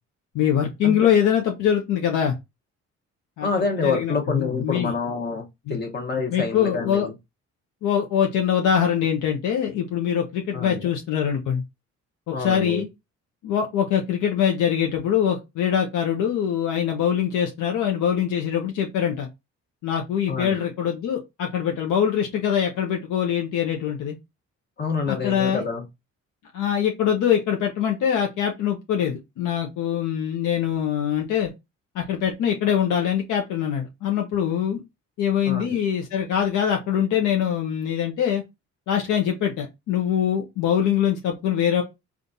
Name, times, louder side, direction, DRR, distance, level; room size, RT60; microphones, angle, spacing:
voice 1, 0.3-2.3 3.4-3.5 3.8-4.9 5.7-5.8 6.3-7.1 7.8-11.6 12.3-12.9 13.4-19.3 19.8-24.2 25.1-25.6 26.5-31.5 31.9-34.8 35.2-38.4 38.9-41.8, left 9 dB, 80° left, 0.7 m, -23 dB
voice 2, 3.4-7.1 10.5-10.9 12.3-12.9 20.3-20.6 24.8-25.8 35.5-35.8, left 4 dB, 35° left, 1.1 m, -27 dB
3.7 x 2.4 x 2.6 m
cardioid pair, 90°, 30 cm